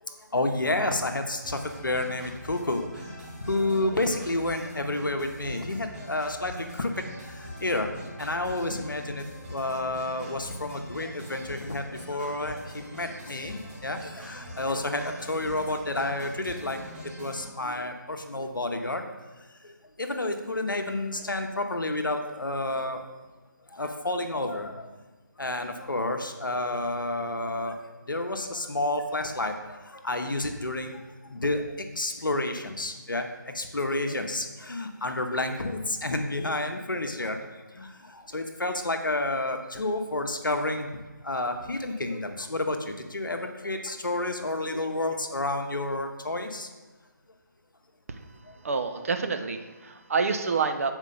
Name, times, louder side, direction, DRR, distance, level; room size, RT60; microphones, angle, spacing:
voice 1, 0.0-6.9 7.3-7.9 8.2-19.0 19.6-23.1 23.7-25.0 25.4-27.8 28.1-33.3 33.5-41.0 41.2-46.7 48.5-48.6, left 2 dB, 85° left, 5 dB, 0.8 m, -30 dB
sound 1, 1.4-17.4, equal, 25° right, 2.2 m, -43 dB
voice 2, 48.6-50.9, right 5 dB, 45° right, 8 dB, 0.6 m, -28 dB
7.2 x 4.4 x 3.9 m, 1.2 s
figure-of-eight pair, 150°, 11 cm